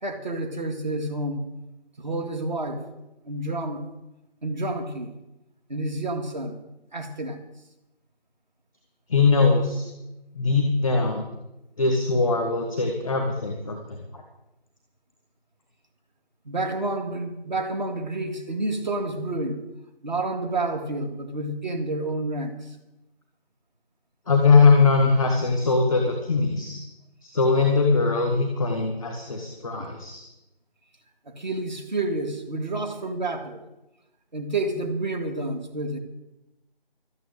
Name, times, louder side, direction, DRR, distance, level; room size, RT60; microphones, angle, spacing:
voice 1, 0.0-1.5 2.0-2.8 3.3-3.8 4.4-5.1 5.7-6.6 6.9-7.4 16.5-19.6 20.0-22.8 31.3-33.6 34.3-36.0, right 2 dB, 45° right, 6 dB, 2.2 m, -29 dB
voice 2, 9.1-9.9 10.3-11.2 11.8-14.2 24.3-26.8 27.2-30.2, left 4 dB, 5° left, 3 dB, 0.8 m, -21 dB
12.5 x 9.1 x 9.0 m, 0.95 s
figure-of-eight pair, 165°, 30 cm